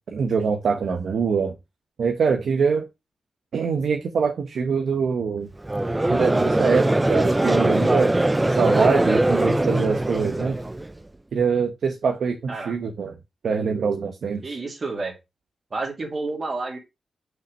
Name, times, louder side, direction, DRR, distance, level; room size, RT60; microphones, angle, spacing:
voice 1, 0.1-1.5 2.0-2.8 3.5-5.5 6.1-8.1 8.5-10.6 11.3-13.2 13.4-14.6, right 5 dB, 75° right, 1.0 m, -24 dB
Conversation / Crowd, 5.6-10.9, right 1 dB, 15° right, 0.6 m, -21 dB
voice 2, 14.4-15.1 15.7-16.8, right 3 dB, 40° right, 2.6 m, -30 dB
5.9 x 5.8 x 5.3 m
wide cardioid pair, 105°, 0 cm